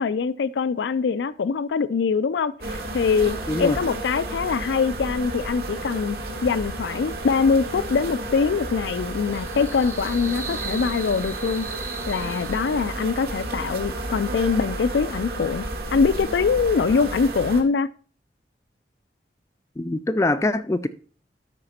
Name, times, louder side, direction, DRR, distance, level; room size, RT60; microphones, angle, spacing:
voice 1, 0.0-15.7 15.9-17.9, left 5 dB, 90° left, 0.4 m, -23 dB
sound 1, 2.6-17.6, right 1 dB, 60° right, 1.9 m, -32 dB
sound 2, 9.1-13.0, right 5 dB, 15° right, 0.8 m, -40 dB
voice 2, 19.8-20.9, left 2 dB, 15° left, 0.4 m, -23 dB
12.5 x 4.9 x 4.2 m
head